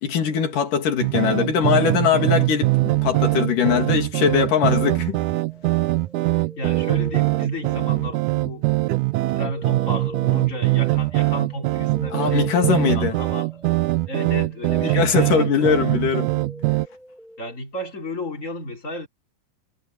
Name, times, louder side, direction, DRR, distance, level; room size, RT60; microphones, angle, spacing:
voice 1, 0.0-5.2 12.1-13.2 14.8-16.3, left 7 dB, 60° left, 4.0 m, -21 dB
sound 1, 1.0-16.9, right 20 dB, 90° right, 1.7 m, -22 dB
sound 2, 5.4-8.7 8.9-17.6, equal, ahead, 4.7 m, -42 dB
voice 2, 6.2-8.7 9.3-13.5 14.1-15.7 17.4-19.1, left 1 dB, 20° left, 3.0 m, -33 dB
omnidirectional pair, 4.3 m